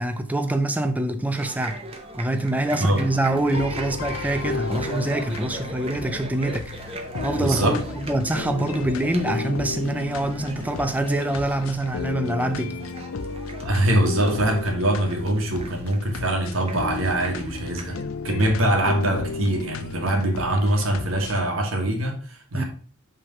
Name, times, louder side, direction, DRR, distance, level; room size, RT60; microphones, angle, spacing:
voice 1, 0.0-1.8 2.2-6.7 7.2-12.8 22.5-22.6, right 1 dB, 5° right, 0.4 m, -25 dB
sound 1, 1.3-18.0, right 2 dB, 25° right, 0.7 m, -39 dB
voice 2, 2.7-3.1 7.4-7.8 13.6-18.0 18.2-22.6, right 1 dB, 65° right, 1.3 m, -23 dB
sound 2, 3.3-21.4, left 4 dB, 65° left, 0.5 m, -34 dB
5.6 x 3.3 x 5.1 m
head